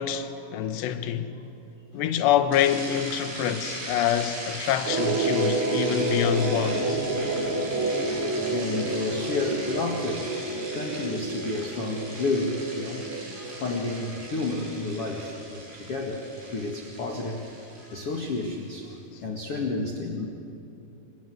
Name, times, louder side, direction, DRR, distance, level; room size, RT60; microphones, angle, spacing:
voice 1, 0.0-1.3 1.9-7.0, left 10 dB, 75° left, 3.2 m, -26 dB
sound 1, 2.5-18.8, right 1 dB, 65° right, 8.9 m, -39 dB
sound 2, 4.9-15.3, right 2 dB, 45° right, 1.9 m, -29 dB
voice 2, 8.5-10.3 10.7-16.3 16.5-17.4 17.8-20.3, left 3 dB, 50° left, 1.9 m, -31 dB
28.0 x 26.0 x 7.8 m
omnidirectional pair, 5.3 m